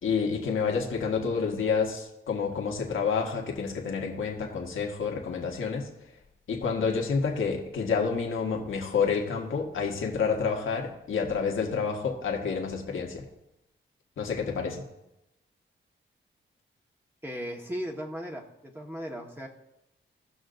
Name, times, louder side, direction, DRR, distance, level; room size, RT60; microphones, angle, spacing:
voice 1, 0.0-5.9 6.5-13.2 14.2-14.8, left 5 dB, 80° left, 0 dB, 1.6 m, -29 dB
voice 2, 17.2-19.5, equal, 10° right, 0 dB, 1.4 m, -37 dB
17.5 x 6.2 x 2.6 m, 0.90 s
cardioid pair, 75°, 20 cm